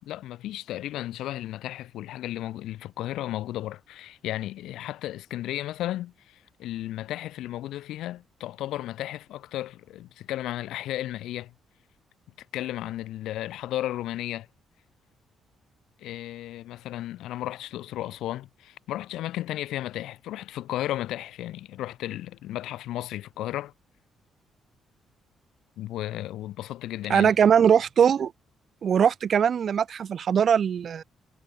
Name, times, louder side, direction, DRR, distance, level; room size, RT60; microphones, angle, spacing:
voice 1, 0.0-11.5 12.5-14.5 16.0-23.7 25.8-27.3, left 14 dB, 85° left, 2.4 m, -34 dB
voice 2, 27.1-28.3 28.8-31.0, right 8 dB, 55° right, 0.7 m, -21 dB
cardioid pair, 90°, 0 cm